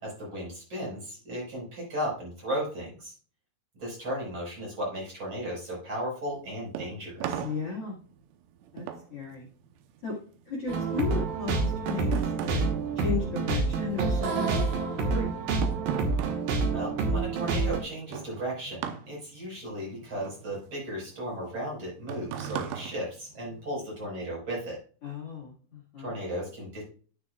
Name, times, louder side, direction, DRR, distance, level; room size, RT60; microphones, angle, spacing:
voice 1, 0.0-3.1 3.8-7.4 16.7-24.8 26.0-26.8, equal, 25° right, -3 dB, 5.1 m, -35 dB
sound 1, 6.3-13.9 14.2-23.9, right 9 dB, 90° right, 3.6 m, -40 dB
voice 2, 7.4-8.0 8.7-8.8 9.1-9.5 10.0-10.1 10.4-12.6 12.9-14.7 15.0-15.6 25.0-26.1, left 5 dB, 75° left, -3 dB, 1.3 m, -35 dB
sound 2, 10.7-17.8, right 4 dB, 70° right, 2.2 m, -28 dB
9.6 x 9.4 x 2.4 m, 0.41 s
omnidirectional pair, 6.0 m